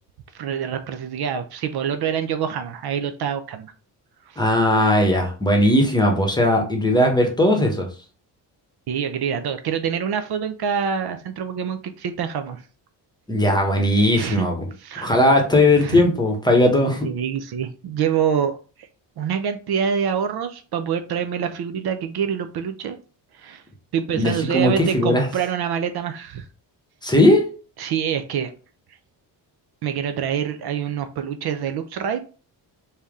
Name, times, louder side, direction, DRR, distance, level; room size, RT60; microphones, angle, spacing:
voice 1, 0.3-3.7 4.3-4.4 8.9-12.6 14.2-14.5 14.8-15.2 15.7-16.0 17.0-18.6 19.2-23.0 23.3-23.6 23.9-26.5 27.8-28.5 29.8-32.2, right 8 dB, 60° right, 0.6 m, -26 dB
voice 2, 4.4-7.9 13.3-14.7 15.0-17.1 24.1-25.3 27.0-27.5, left 1 dB, 10° left, 0.9 m, -18 dB
3.3 x 2.8 x 3.5 m
cardioid pair, 110°, 43 cm